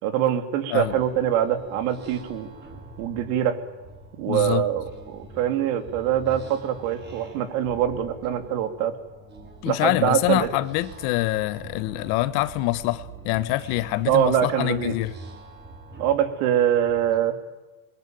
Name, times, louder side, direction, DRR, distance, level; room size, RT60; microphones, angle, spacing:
voice 1, 0.0-2.5 3.0-3.6 4.2-8.9 9.6-10.5 14.0-14.9 16.0-17.4, right 10 dB, 60° right, 3.2 m, -24 dB
sound 1, 0.8-17.2, right 2 dB, 20° right, 6.6 m, -45 dB
voice 2, 4.3-4.6 9.6-15.1, left 17 dB, 50° left, 1.3 m, -25 dB
28.0 x 22.5 x 9.3 m
supercardioid pair, 160°, 49 cm